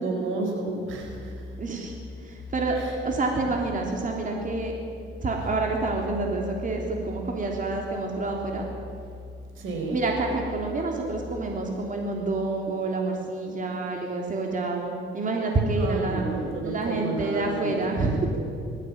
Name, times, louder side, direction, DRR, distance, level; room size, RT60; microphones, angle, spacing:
voice 1, 0.0-1.4 2.8-2.9 9.6-10.0 15.8-18.0, right 2 dB, 80° right, 2 dB, 4.8 m, -31 dB
sound 1, 1.0-11.7, left 2 dB, 45° left, 5.7 m, -41 dB
voice 2, 1.6-1.9 2.2-2.8 3.0-4.7 5.2-8.6 9.9-16.2 16.6-18.3, right 3 dB, 40° right, 0 dB, 3.4 m, -28 dB
20.5 x 15.0 x 8.8 m, 2.4 s
cardioid pair, 90°, 20 cm